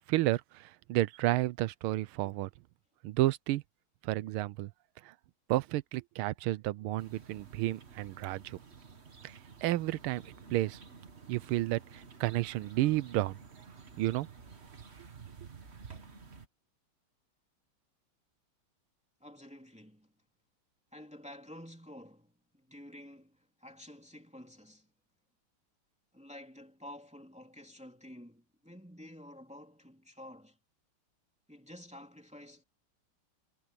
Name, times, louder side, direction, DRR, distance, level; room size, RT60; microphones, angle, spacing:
voice 1, 0.1-2.5 3.0-3.6 4.0-4.7 5.0-5.1 5.5-8.6 9.2-10.8 11.3-13.4 14.0-14.3, right 16 dB, 80° right, 1.5 m, -31 dB
sound 1, 7.0-16.5, right 5 dB, 35° right, 1.5 m, -52 dB
voice 2, 19.2-20.1 20.9-24.9 26.1-30.6 31.5-32.6, left 1 dB, 5° right, 2.8 m, -51 dB
omnidirectional pair, 2.4 m